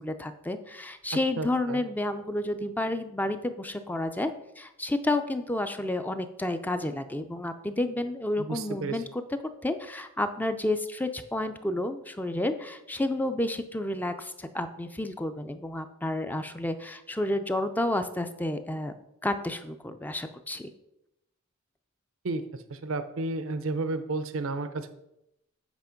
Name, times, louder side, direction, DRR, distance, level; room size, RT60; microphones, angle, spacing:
voice 1, 0.0-9.2 9.6-18.9 19.2-20.7, left 1 dB, 10° left, 9 dB, 0.4 m, -30 dB
voice 2, 1.4-1.8 8.4-9.0 22.2-24.9, right 3 dB, 70° right, 11 dB, 0.6 m, -32 dB
8.2 x 5.2 x 5.0 m, 0.84 s
head